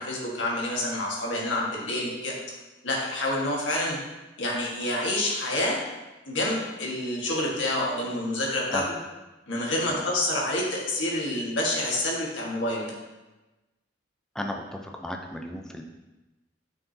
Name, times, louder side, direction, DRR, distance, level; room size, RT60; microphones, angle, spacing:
voice 1, 0.0-2.4 2.8-4.0 4.4-5.8 6.3-9.0 9.5-12.9, left 1 dB, 90° left, -3 dB, 1.7 m, -28 dB
voice 2, 14.4-15.8, left 1 dB, 5° left, 2 dB, 0.6 m, -35 dB
9.1 x 5.9 x 2.8 m, 1.1 s
head